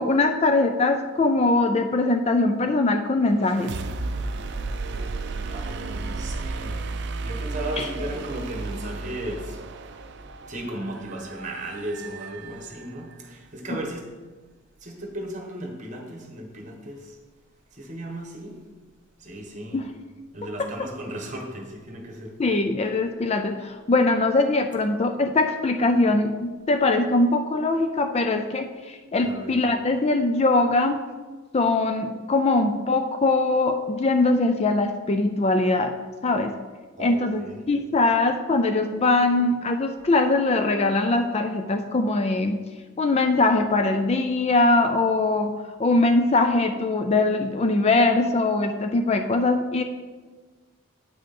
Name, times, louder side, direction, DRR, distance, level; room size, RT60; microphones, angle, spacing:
voice 1, 0.0-3.7 7.8-7.9 19.7-19.8 22.4-31.0 31.5-35.9 36.2-36.5 37.0-37.4 37.7-42.6 43.0-49.8, left 2 dB, 30° left, 7 dB, 0.4 m, -22 dB
sound 1, 3.4-13.1, right 3 dB, 55° right, 0.5 m, -33 dB
voice 2, 5.4-6.8 7.2-9.6 10.0-10.1 10.4-14.1 14.8-17.2 17.7-18.6 19.2-19.8 20.3-22.4 29.2-29.6 37.0-37.7, right 1 dB, 35° right, 1 dB, 1.4 m, -35 dB
8.4 x 6.2 x 4.3 m, 1.3 s
head